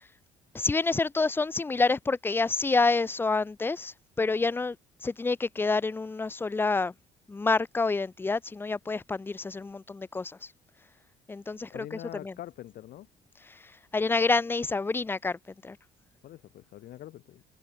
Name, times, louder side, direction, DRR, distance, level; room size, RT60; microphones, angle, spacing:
voice 1, 0.5-4.8 5.0-6.9 7.3-10.4 11.3-12.3 13.9-15.8, left 3 dB, 15° left, 0.4 m, -28 dB
voice 2, 11.7-13.1 16.2-17.4, left 13 dB, 65° left, 1.0 m, -44 dB
cardioid pair, 110°, 17 cm